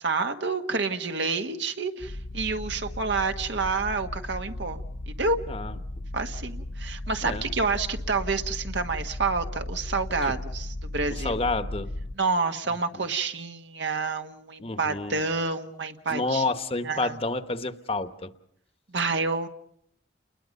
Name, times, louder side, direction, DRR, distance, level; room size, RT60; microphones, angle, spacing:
voice 1, 0.0-4.8 5.2-5.4 6.1-11.3 12.1-16.4 16.8-17.1 18.9-19.5, right 4 dB, 70° right, 6 dB, 1.5 m, -28 dB
sound 1, 2.0-12.1, left 1 dB, 55° left, 0.8 m, -36 dB
voice 2, 11.1-11.9 12.9-13.0 14.6-15.2 16.1-18.3, left 3 dB, 30° left, 10 dB, 1.1 m, -29 dB
30.0 x 21.0 x 5.4 m, 0.72 s
head